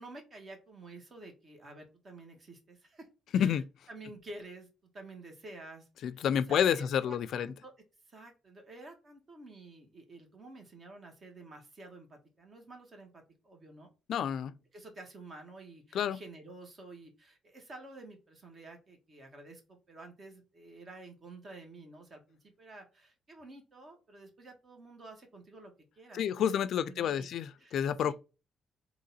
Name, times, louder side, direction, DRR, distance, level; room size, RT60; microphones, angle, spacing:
voice 1, 0.0-3.1 3.4-5.9 6.3-7.7 8.1-13.9 14.7-27.3 27.6-28.1, right 2 dB, 40° right, 1.6 m, -50 dB
voice 2, 3.3-3.6 6.0-7.5 14.1-14.5 15.9-16.2 26.1-28.1, left 9 dB, 70° left, 0.3 m, -29 dB
3.7 x 2.9 x 4.2 m
cardioid pair, 90°, 0 cm